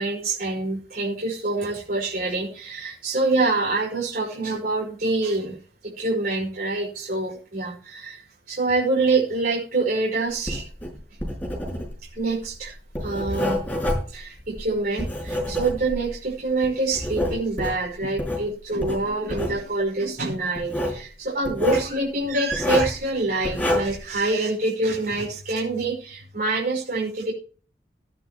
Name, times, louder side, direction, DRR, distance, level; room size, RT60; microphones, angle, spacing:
voice 1, 0.0-5.6 5.8-10.6 12.1-12.7 13.0-13.6 14.1-27.3, right 3 dB, 55° right, -4 dB, 5.7 m, -26 dB
Writing, 10.4-16.2 16.6-18.4 18.8-19.6 20.6-21.0 21.4-21.9 22.5-23.0 23.4-24.0, left 1 dB, 10° left, 6.2 m, -27 dB
16.0 x 10.5 x 3.1 m, 0.40 s
head